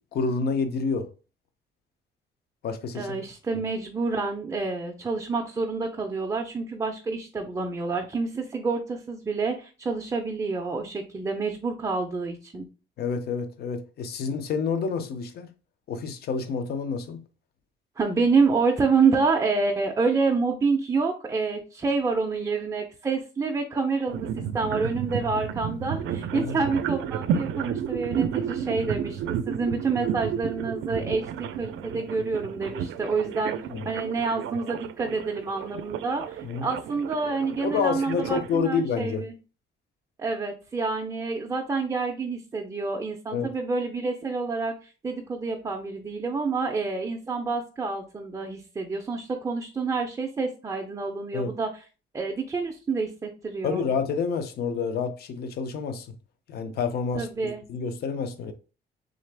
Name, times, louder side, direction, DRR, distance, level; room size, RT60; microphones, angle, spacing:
voice 1, 0.1-1.1 2.6-3.2 13.0-15.5 15.9-17.2 25.3-25.4 26.3-26.6 33.7-33.8 36.4-36.7 37.6-39.2 43.3-43.5 51.3-51.5 53.6-56.1 56.5-58.5, left 5 dB, 55° left, 0.5 m, -28 dB
voice 2, 2.9-12.7 18.0-24.3 24.5-29.2 29.5-31.2 31.6-33.6 33.8-39.3 40.2-51.7 52.1-53.8 57.1-57.6, right 4 dB, 15° right, 0.4 m, -28 dB
sound 1, 24.1-38.6, right 8 dB, 80° right, 0.4 m, -32 dB
3.8 x 3.2 x 3.3 m
cardioid pair, 170°, 20 cm